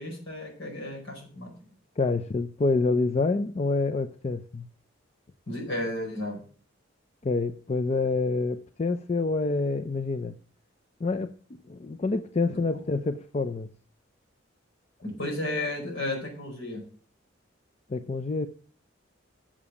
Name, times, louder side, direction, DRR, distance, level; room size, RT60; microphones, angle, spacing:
voice 1, 0.0-1.5 5.5-6.4 12.5-12.6 15.0-16.8, left 1 dB, 80° left, -1 dB, 4.9 m, -33 dB
voice 2, 2.0-4.7 7.2-10.3 11.0-13.7 17.9-18.5, left 3 dB, 35° left, 10 dB, 0.4 m, -27 dB
7.4 x 7.0 x 6.9 m, 0.43 s
head